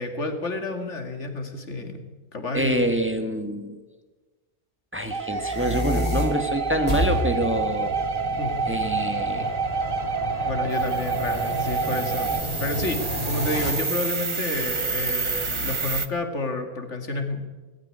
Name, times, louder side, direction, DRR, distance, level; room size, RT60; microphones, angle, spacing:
voice 1, 0.0-2.0 2.3-2.8 8.4-8.5 10.5-17.4, left 2 dB, 85° left, 6 dB, 2.6 m, -30 dB
voice 2, 2.5-3.8 4.9-7.9 8.7-9.5, right 1 dB, 10° right, 6 dB, 1.6 m, -26 dB
sound 1, 5.1-12.4, right 4 dB, 50° right, 1.3 m, -28 dB
sound 2, 5.2-13.7, equal, 30° left, 4.9 m, -30 dB
sound 3, 10.7-16.1, right 4 dB, 30° right, 0.8 m, -30 dB
18.5 x 15.5 x 9.8 m, 1.3 s
omnidirectional pair, 1.2 m